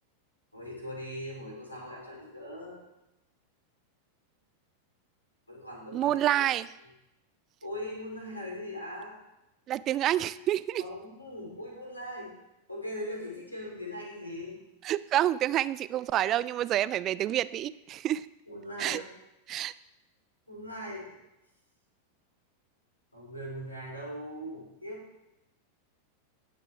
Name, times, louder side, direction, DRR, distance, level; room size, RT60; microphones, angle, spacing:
voice 1, 0.5-2.8 5.5-6.4 6.8-6.9 7.6-9.2 10.8-12.3 12.7-14.6 18.5-19.1 20.5-21.2 23.1-25.0, equal, 85° left, -2 dB, 3.3 m, -40 dB
voice 2, 5.9-6.7 9.7-10.8 14.8-18.3 18.8-19.0 19.5-19.7, right 12 dB, 35° right, 17 dB, 0.3 m, -28 dB
17.5 x 6.6 x 3.4 m, 0.91 s
figure-of-eight pair, 90°, 0 cm